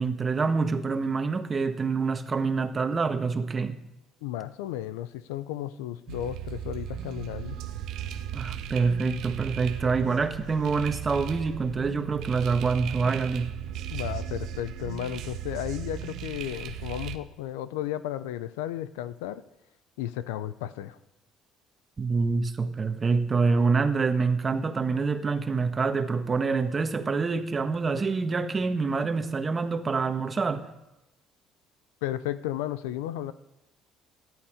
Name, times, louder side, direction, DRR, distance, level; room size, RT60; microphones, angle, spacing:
voice 1, 0.0-3.8 8.3-13.5 22.0-30.7, right 4 dB, 30° right, 1.4 m, -26 dB
voice 2, 4.2-7.6 13.9-19.4 20.0-21.0 32.0-33.3, left 12 dB, 90° left, 0.6 m, -34 dB
sound 1, 6.1-17.2, right 10 dB, 70° right, 0.8 m, -36 dB
17.5 x 11.5 x 5.0 m
supercardioid pair, 75°, 0 cm